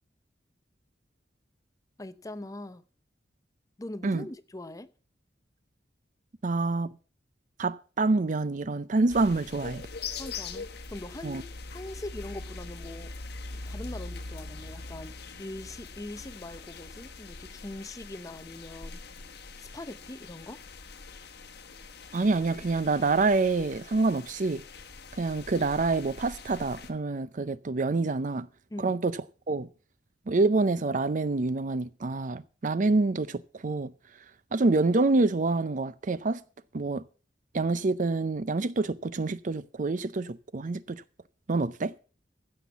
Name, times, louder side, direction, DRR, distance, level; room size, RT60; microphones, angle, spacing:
voice 1, 2.0-2.8 3.8-4.9 10.2-11.5 11.7-13.1 13.7-19.0 19.6-20.6 28.7-29.0, left 1 dB, 20° left, 0.6 m, -42 dB
voice 2, 6.4-7.0 7.6-9.9 11.2-11.4 22.1-24.6 25.1-28.5 28.8-29.7 30.3-36.4 36.7-37.1 37.5-41.0 41.5-41.9, right 3 dB, 45° right, 0.6 m, -27 dB
sound 1, 9.1-26.9, left 4 dB, 65° left, 1.3 m, -43 dB
15.5 x 5.9 x 7.0 m
head